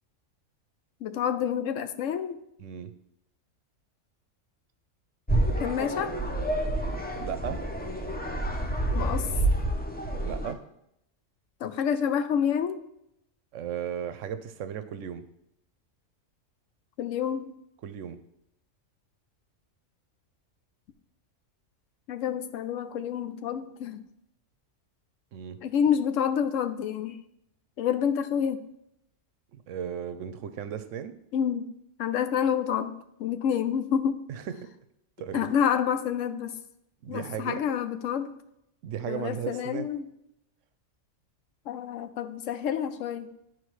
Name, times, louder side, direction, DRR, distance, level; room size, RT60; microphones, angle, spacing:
voice 1, 1.0-2.4 5.6-6.2 8.9-9.3 11.6-12.8 17.0-17.5 22.1-24.1 25.6-27.2 27.8-28.6 31.3-31.7 32.0-32.9 33.2-34.2 35.3-36.6 37.1-38.3 39.0-40.1 41.7-43.3, left 8 dB, 75° left, 11 dB, 0.9 m, -28 dB
voice 2, 2.6-2.9 7.1-7.6 10.2-10.6 13.5-15.2 17.8-18.2 25.3-25.6 29.5-31.1 34.3-34.7 35.2-35.5 37.0-37.6 38.8-39.9, right 8 dB, 75° right, 11 dB, 0.9 m, -35 dB
sound 1, 5.3-10.5, right 1 dB, 15° left, 0.3 m, -28 dB
11.5 x 4.5 x 3.1 m, 0.80 s
omnidirectional pair, 1.3 m